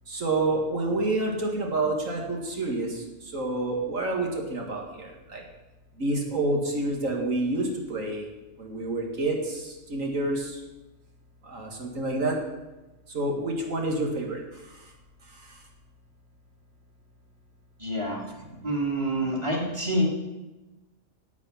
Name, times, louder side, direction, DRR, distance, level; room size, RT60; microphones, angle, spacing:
voice 1, 0.1-5.4 6.0-8.3 8.6-10.6 11.4-12.4 13.1-14.9 15.3-15.6 18.6-18.7, right 2 dB, 85° right, 0 dB, 2.4 m, -29 dB
voice 2, 17.8-18.2 18.6-20.1, right 1 dB, 20° right, -2 dB, 2.9 m, -27 dB
15.5 x 8.4 x 5.7 m, 1.1 s
omnidirectional pair, 1.3 m